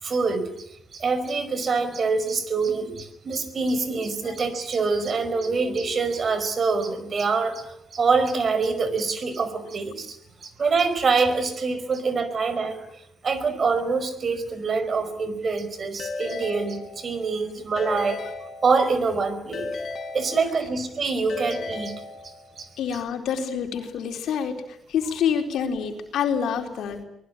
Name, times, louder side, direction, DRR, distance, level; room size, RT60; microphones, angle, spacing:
voice 1, 0.0-12.9 13.2-19.7 20.1-22.7, right 4 dB, 45° right, 12 dB, 5.1 m, -25 dB
Keyboard (musical) / Ringtone, 16.0-17.3 17.8-19.1 19.5-20.9 21.3-22.6, left 3 dB, 50° left, 5.0 m, -35 dB
voice 2, 22.8-27.0, left 7 dB, 75° left, 5 dB, 4.2 m, -27 dB
24.5 x 20.0 x 9.9 m, 0.79 s
cardioid pair, 90°, 0 cm